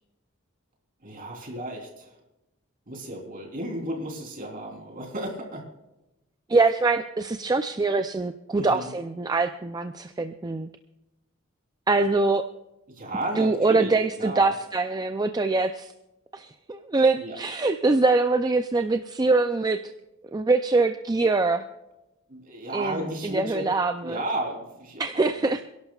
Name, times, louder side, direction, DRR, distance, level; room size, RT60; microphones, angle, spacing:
voice 1, 1.0-2.1 2.9-5.7 8.6-8.9 13.0-14.5 17.1-17.4 22.3-23.7 24.0-25.4, right 1 dB, 45° right, 0 dB, 3.6 m, -33 dB
voice 2, 6.5-10.7 11.9-12.5 13.4-15.9 16.3-19.8 20.3-21.6 22.7-24.2 25.0-25.6, right 3 dB, 20° right, 8 dB, 0.4 m, -24 dB
28.0 x 11.5 x 2.4 m, 0.94 s
head